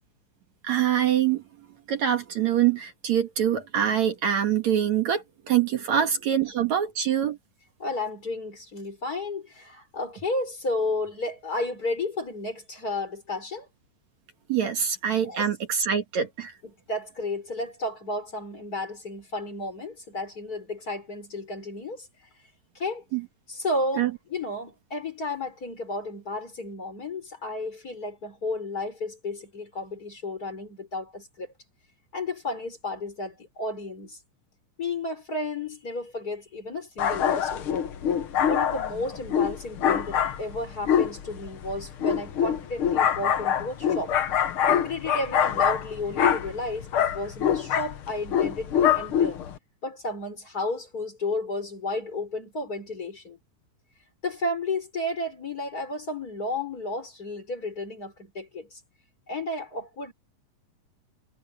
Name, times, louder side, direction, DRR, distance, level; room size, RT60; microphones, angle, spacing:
voice 1, 0.6-1.4 1.9-7.4 14.5-16.5 23.1-23.2 24.0-24.1, right 9 dB, 60° right, 3.0 m, -24 dB
voice 2, 7.8-13.7 15.2-15.4 16.9-22.1 22.7-23.0 23.5-31.5 32.1-34.2 34.8-37.7 38.5-44.1 44.8-49.4 49.8-53.4 54.2-58.8 59.3-60.1, left 2 dB, 25° left, 4.4 m, -32 dB
sound 1, 37.0-49.6, left 9 dB, 60° left, 1.5 m, -25 dB
omnidirectional pair, 3.8 m